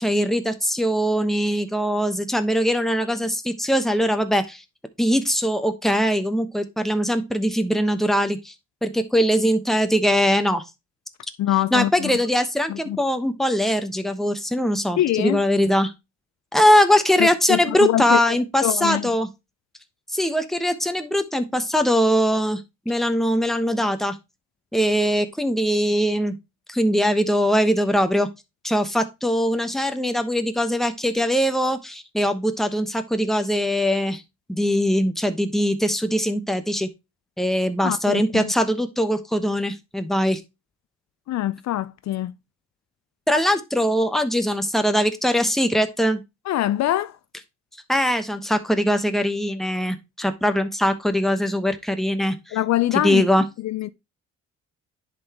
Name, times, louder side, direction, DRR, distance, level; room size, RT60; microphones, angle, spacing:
voice 1, 0.0-4.6 5.0-8.5 8.8-10.6 11.7-15.9 16.5-19.3 20.1-22.6 22.9-24.2 24.7-26.4 26.7-28.3 28.6-34.2 34.5-36.9 37.4-40.4 43.3-46.2 47.9-52.6 53.0-53.4, equal, ahead, 1.0 m, -21 dB
voice 2, 11.4-12.1 12.7-13.0 15.0-15.4 17.2-19.1 37.8-38.5 41.3-42.3 46.5-47.2 52.5-53.3 53.6-53.9, left 14 dB, 65° left, 0.5 m, -24 dB
10.5 x 4.1 x 2.9 m
cardioid pair, 90°, 30 cm